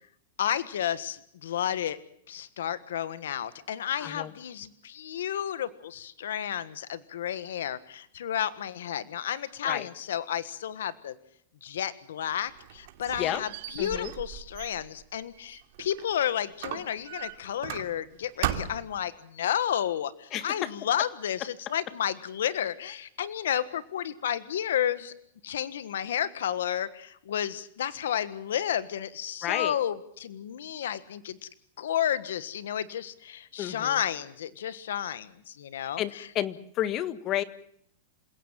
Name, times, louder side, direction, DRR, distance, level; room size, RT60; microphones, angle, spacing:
voice 1, 0.4-2.0 2.3-11.2 11.6-13.5 13.7-25.1 25.4-31.4 31.8-36.3, left 10 dB, 85° left, 14 dB, 1.5 m, -31 dB
voice 2, 4.0-4.3 9.6-9.9 13.2-13.4 13.8-14.1 20.3-20.7 29.4-29.8 33.6-34.0 35.8-37.4, left 12 dB, 35° left, 13 dB, 1.8 m, -31 dB
Squeak, 12.3-16.1 16.6-18.1 18.4-19.0, right 12 dB, 60° right, 3.0 m, -37 dB
28.0 x 17.5 x 7.5 m, 0.70 s
supercardioid pair, 145°, 0 cm